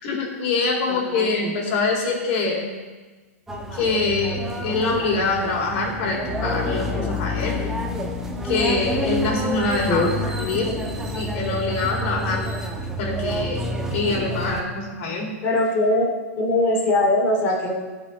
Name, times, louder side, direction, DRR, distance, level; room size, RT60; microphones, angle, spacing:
voice 1, 0.0-2.7 3.7-7.6 8.4-10.1 10.4-10.7 11.1-12.4 13.0-13.6 13.9-15.3, left 3 dB, 50° left, -1 dB, 4.0 m, -24 dB
voice 2, 0.9-1.5 9.9-10.1 15.4-16.1 16.4-17.7, left 2 dB, 30° left, -1 dB, 3.4 m, -21 dB
sound 1, 3.5-14.6, right 1 dB, 5° right, 1.2 m, -29 dB
sound 2, 6.3-11.4, left 7 dB, 10° left, 1.6 m, -32 dB
16.5 x 6.0 x 4.5 m, 1.3 s
hypercardioid pair, 125°, 8 cm